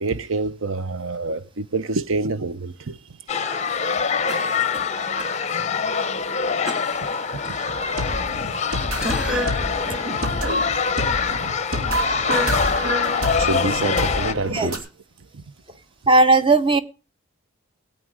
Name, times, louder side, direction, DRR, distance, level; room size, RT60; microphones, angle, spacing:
voice 1, 0.0-3.0 4.8-4.9 7.5-7.6 9.0-9.1 10.4-10.8 11.3-11.4 11.8-12.1 13.4-14.8 15.3-15.4, right 3 dB, 70° right, 0.7 m, -27 dB
sound 1, 3.3-14.3, left 5 dB, 30° left, 0.6 m, -24 dB
Cough, 4.3-5.3 5.7-5.8 6.7-8.7 9.0-9.7 10.2-10.3, left 1 dB, 5° right, 1.9 m, -35 dB
sound 2, 7.7-14.8, equal, 85° right, 3.5 m, -28 dB
voice 2, 16.1-16.8, right 2 dB, 25° right, 0.7 m, -16 dB
18.5 x 8.6 x 4.8 m
head